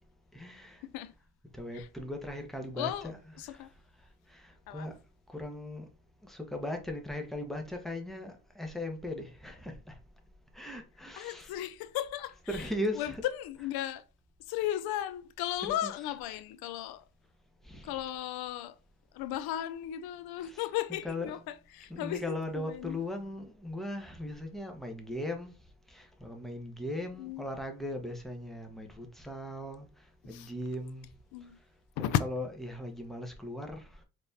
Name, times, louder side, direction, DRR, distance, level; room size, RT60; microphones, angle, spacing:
voice 1, 0.3-0.8 1.5-3.1 3.5-3.7 4.3-4.9 5.3-5.9 6.2-9.9 10.5-11.5 12.5-13.2 15.8-15.9 17.6-17.9 20.4-20.6 21.0-21.4 21.9-25.5 25.9-29.9 30.2-31.1 32.2-34.0, left 1 dB, ahead, 1.2 m, -38 dB
voice 2, 2.7-3.7 4.7-4.9 11.1-14.0 14.5-17.0 17.8-18.8 19.1-23.0 27.2-27.5 30.3-30.5 31.3-31.6 32.0-32.2, left 12 dB, 75° left, 0.5 m, -35 dB
4.0 x 3.5 x 2.7 m
cardioid pair, 75°, 38 cm